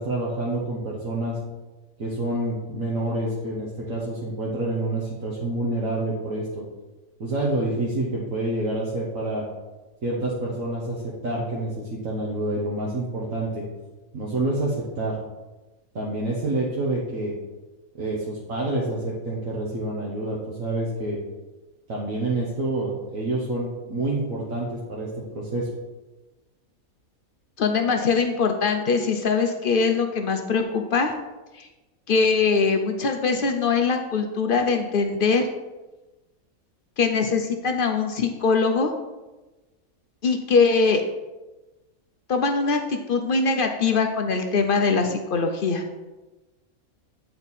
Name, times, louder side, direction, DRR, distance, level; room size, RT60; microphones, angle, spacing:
voice 1, 0.0-1.4 2.0-6.6 7.2-9.5 10.0-13.6 14.1-15.2 15.9-17.3 18.0-21.2 21.9-25.7, right 2 dB, 70° right, -5 dB, 1.5 m, -28 dB
voice 2, 27.6-31.1 31.5-31.7 32.1-35.5 37.0-38.9 40.2-41.0 42.3-45.8, left 4 dB, 60° left, 5 dB, 0.6 m, -22 dB
8.8 x 4.4 x 4.1 m, 1.1 s
omnidirectional pair, 1.5 m